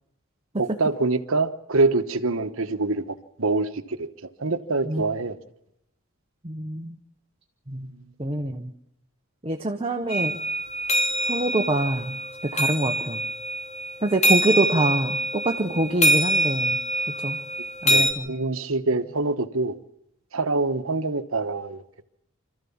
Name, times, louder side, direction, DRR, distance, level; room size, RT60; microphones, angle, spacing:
voice 1, 0.6-5.4 7.9-8.1 17.9-19.7 20.3-22.0, right 3 dB, 70° right, 10 dB, 1.1 m, -25 dB
voice 2, 6.4-7.0 7.7-7.9 8.2-8.7 9.4-10.4 11.2-12.2 12.4-13.2 14.0-16.8 17.2-17.4 17.8-18.3, right 2 dB, 25° right, 4 dB, 1.0 m, -25 dB
sound 1, 10.1-18.1, right 1 dB, 30° left, 1.5 m, -25 dB
26.0 x 14.0 x 7.2 m, 0.80 s
head